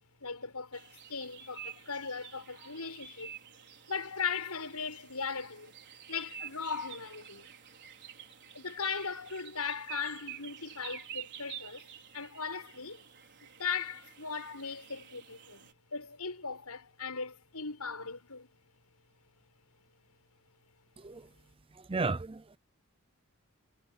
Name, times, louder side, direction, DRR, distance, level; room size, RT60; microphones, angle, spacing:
voice 1, 0.2-3.3 3.9-5.8 6.1-7.5 8.5-11.9 12.1-13.0 13.6-18.5, left 5 dB, 85° left, 7.5 m, -38 dB
sound 1, 0.7-15.7, right 9 dB, 55° right, 4.8 m, -49 dB
voice 2, 21.0-21.3 21.7-22.6, right 3 dB, 25° right, 0.6 m, -34 dB
head